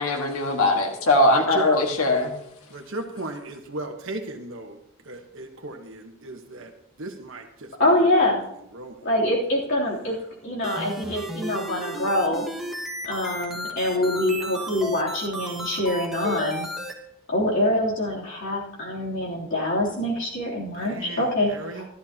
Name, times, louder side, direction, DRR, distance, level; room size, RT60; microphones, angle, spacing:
voice 1, 0.0-2.3, left 1 dB, 90° left, 1.7 m, -21 dB
voice 2, 1.3-1.7 2.7-4.8 5.1-6.7 7.0-7.7 8.2-8.3 8.7-9.0 20.8-21.9, right 2 dB, 60° right, 1.3 m, -36 dB
voice 3, 7.8-8.4 9.0-10.2 10.4-12.4 13.0-16.7 17.3-21.9, left 1 dB, 60° left, 3.3 m, -24 dB
sound 1, 10.6-16.9, equal, ahead, 1.7 m, -34 dB
14.5 x 12.5 x 2.9 m
head